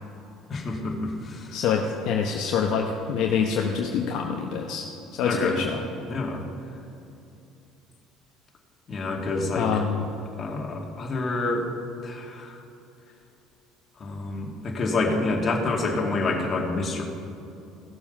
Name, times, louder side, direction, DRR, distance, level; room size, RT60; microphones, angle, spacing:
voice 1, 0.5-1.5 5.2-5.6 6.1-6.4 8.9-9.7 10.4-11.7 12.0-12.6 14.0-17.0, left 3 dB, 40° left, 0 dB, 2.4 m, -27 dB
voice 2, 1.5-4.8 5.1-5.8 9.6-10.1, left 6 dB, 65° left, 1 dB, 0.9 m, -26 dB
16.0 x 7.1 x 5.8 m, 2.7 s
hypercardioid pair, 70°, 0 cm